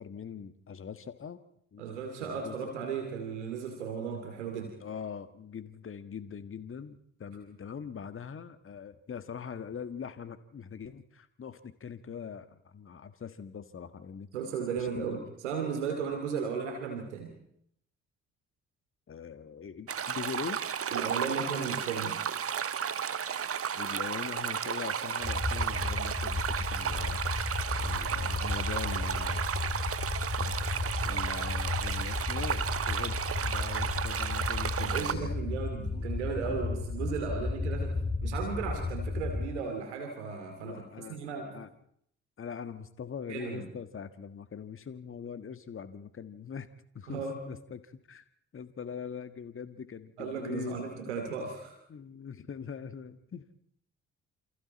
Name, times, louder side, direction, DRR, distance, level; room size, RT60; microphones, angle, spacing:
voice 1, 0.0-1.4 1.7-1.8 2.2-2.7 4.8-14.3 14.7-15.0 19.1-20.6 23.7-27.2 27.8-29.4 30.4-30.5 31.0-35.3 35.9-36.1 36.4-36.9 37.3-37.5 40.6-41.3 41.5-41.7 42.4-46.7 46.9-48.3 48.5-50.8 51.9-53.6, left 7 dB, 40° left, 11 dB, 1.7 m, -42 dB
voice 2, 1.8-4.7 14.3-17.3 20.9-22.2 34.8-41.5 43.3-43.7 47.1-47.4 50.2-51.7, right 6 dB, 80° right, 4 dB, 2.7 m, -35 dB
sound 1, 19.9-35.1, right 8 dB, 40° right, 1.4 m, -33 dB
sound 2, 25.2-39.5, left 3 dB, 20° left, 6.5 m, -34 dB
28.0 x 28.0 x 4.2 m, 0.70 s
figure-of-eight pair, 40°, 34 cm